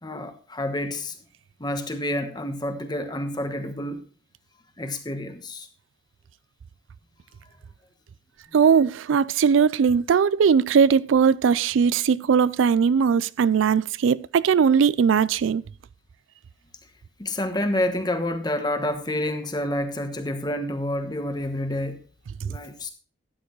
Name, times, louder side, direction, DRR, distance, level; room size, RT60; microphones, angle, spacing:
voice 1, 0.0-1.2 1.6-4.1 4.8-5.7 17.2-22.0 22.4-22.9, left 1 dB, 20° left, 1.1 m, -28 dB
voice 2, 8.5-15.6, right 6 dB, 85° right, 0.4 m, -19 dB
12.5 x 8.8 x 3.1 m
head